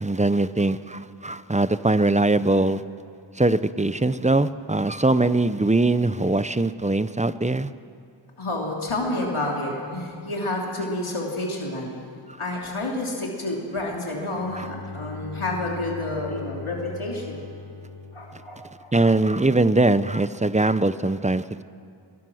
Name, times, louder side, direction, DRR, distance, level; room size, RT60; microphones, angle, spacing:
voice 1, 0.0-2.8 3.4-7.7 14.5-14.7 18.9-21.4, right 2 dB, 15° right, 14 dB, 0.6 m, -21 dB
voice 2, 8.4-11.9 12.4-17.5 18.1-18.9 19.3-19.4, left 2 dB, 85° left, -2 dB, 3.3 m, -29 dB
Bowed string instrument, 14.1-19.1, left 3 dB, 50° left, 2.0 m, -40 dB
22.0 x 21.0 x 6.4 m, 2.6 s
wide cardioid pair, 60°, 48 cm